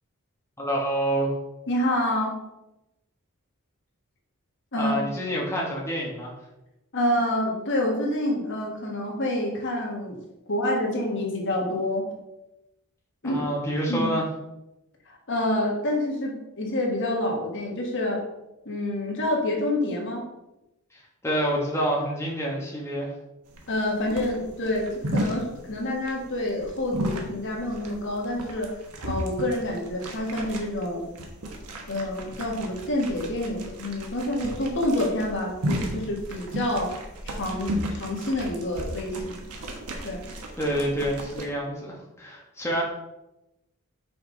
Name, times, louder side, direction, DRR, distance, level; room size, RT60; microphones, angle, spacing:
voice 1, 0.6-1.3 4.7-6.3 13.2-14.3 20.9-23.1 40.6-42.8, equal, 10° left, -3 dB, 1.3 m, -27 dB
voice 2, 1.7-2.3 4.7-5.1 6.9-10.2 10.5-12.0 13.2-13.4 13.9-14.1 15.1-18.2 18.6-20.2 23.7-28.7 29.0-31.0 31.9-36.9 37.2-39.4 40.0-40.2, left 1 dB, 55° left, 0 dB, 1.5 m, -27 dB
sound 1, 23.5-41.4, equal, 90° right, 1.2 m, -34 dB
5.7 x 5.2 x 3.9 m, 0.92 s
head